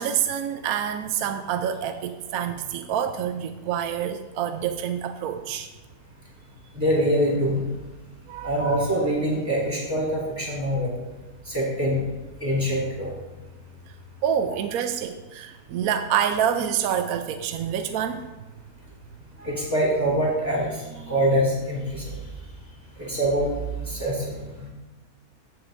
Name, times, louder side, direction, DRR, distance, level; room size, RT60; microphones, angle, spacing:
voice 1, 0.0-5.7 8.3-8.5 14.2-18.3, right 9 dB, 75° right, 8 dB, 1.0 m, -27 dB
voice 2, 6.7-7.7 8.4-10.9 11.4-12.0 12.4-13.1 19.4-22.2 22.9-23.5 23.8-24.7, equal, 10° right, -6 dB, 3.3 m, -24 dB
15.5 x 6.9 x 2.6 m, 1.1 s
omnidirectional pair, 1.6 m